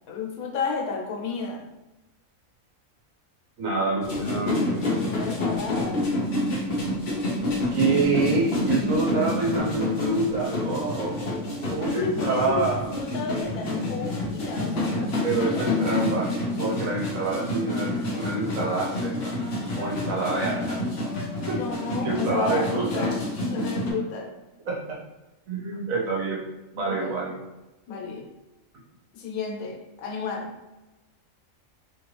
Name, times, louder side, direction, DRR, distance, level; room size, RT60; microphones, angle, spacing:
voice 1, 0.1-1.6 5.1-6.0 11.8-15.8 21.5-23.2 23.4-24.3 26.9-27.1 27.9-28.3 29.1-30.5, left 5 dB, 90° left, 1 dB, 1.1 m, -32 dB
voice 2, 3.6-4.7 7.7-11.2 11.7-12.9 15.2-16.3 16.6-19.3 19.7-20.8 21.1-23.1 24.7-25.0 25.5-26.4 26.7-27.4, right 3 dB, 75° right, -3 dB, 1.2 m, -27 dB
sound 1, 4.0-23.9, left 2 dB, 50° left, 0.9 m, -28 dB
3.0 x 2.5 x 3.2 m, 1.0 s
omnidirectional pair, 1.4 m